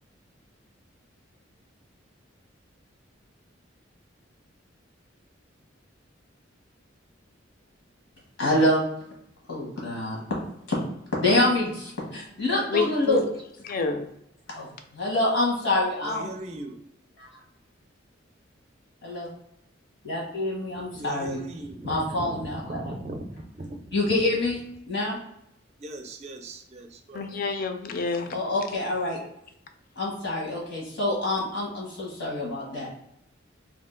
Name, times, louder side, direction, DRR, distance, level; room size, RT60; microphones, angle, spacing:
voice 1, 8.4-8.9 9.5-10.2 11.2-13.2 14.5-14.7 14.9-16.3 19.0-19.3 20.0-21.4 21.8-22.8 23.9-24.6 24.9-25.2 28.3-29.2 30.0-32.9, left 1 dB, 80° left, -3 dB, 1.1 m, -26 dB
voice 2, 12.7-13.2 13.7-14.1 27.1-28.3, left 4 dB, 50° left, 7 dB, 0.4 m, -28 dB
voice 3, 16.0-16.8 20.9-24.1 25.8-27.4, right 1 dB, 35° right, 5 dB, 0.4 m, -38 dB
2.7 x 2.4 x 3.7 m, 0.77 s
head